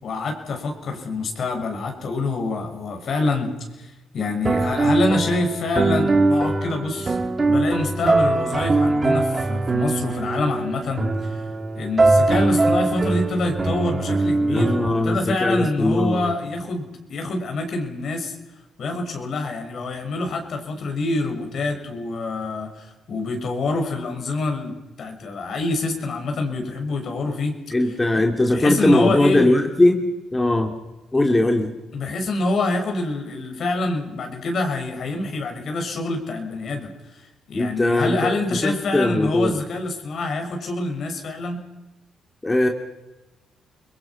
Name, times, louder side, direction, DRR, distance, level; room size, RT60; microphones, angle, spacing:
voice 1, 0.0-7.2 7.5-11.4 11.7-18.3 18.8-27.5 28.5-29.6 31.9-41.6, left 2 dB, 60° left, 4 dB, 6.5 m, -26 dB
sound 1, 4.4-14.9, right 2 dB, 30° right, 3.0 m, -21 dB
voice 2, 14.5-16.3 27.7-30.0 30.3-30.7 31.1-31.7 37.6-38.4 38.6-39.6 42.4-42.7, left 1 dB, 20° left, 3 dB, 2.9 m, -20 dB
30.0 x 22.0 x 6.0 m, 1.1 s
cardioid pair, 90°, 0 cm